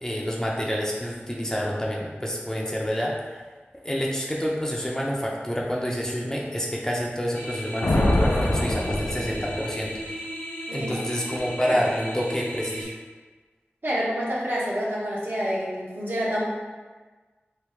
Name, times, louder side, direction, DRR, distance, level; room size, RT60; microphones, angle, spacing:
voice 1, 0.0-3.2 3.8-9.9 10.7-13.0, equal, 15° left, -3 dB, 0.5 m, -28 dB
sound 1, 7.3-12.8, equal, 50° left, 0.7 m, -36 dB
Thunder, 7.8-10.0, left 1 dB, 85° left, 0.4 m, -24 dB
voice 2, 10.7-11.0 11.7-11.8 13.8-16.4, equal, 60° right, -6 dB, 0.9 m, -28 dB
2.9 x 2.6 x 3.5 m, 1.3 s
wide cardioid pair, 50°, 4 cm